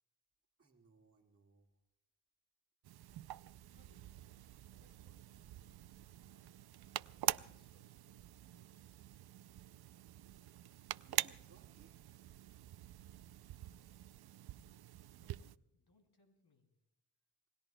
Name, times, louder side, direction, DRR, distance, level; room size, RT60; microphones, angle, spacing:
voice 1, 0.6-1.8 11.0-12.0, right 4 dB, 35° right, -5 dB, 1.9 m, -67 dB
sound 1, 2.8-15.6, right 12 dB, 75° right, 0.5 m, -45 dB
voice 2, 3.7-4.2 4.8-6.6 7.2-9.2 15.1-16.7, left 3 dB, 90° left, 5 dB, 3.0 m, -74 dB
28.0 x 19.5 x 2.2 m, 0.82 s
cardioid pair, 75°, 38 cm